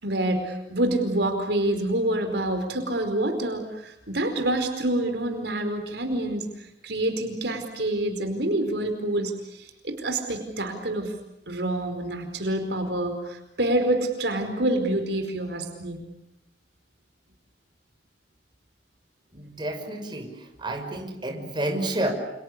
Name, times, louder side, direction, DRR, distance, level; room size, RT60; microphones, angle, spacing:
voice 1, 0.0-6.5 6.8-11.1 11.5-16.0, right 1 dB, 70° right, 6 dB, 4.8 m, -27 dB
voice 2, 19.3-20.3 20.6-22.1, right 1 dB, 25° right, 3 dB, 6.1 m, -30 dB
29.5 x 29.5 x 6.8 m, 0.88 s
head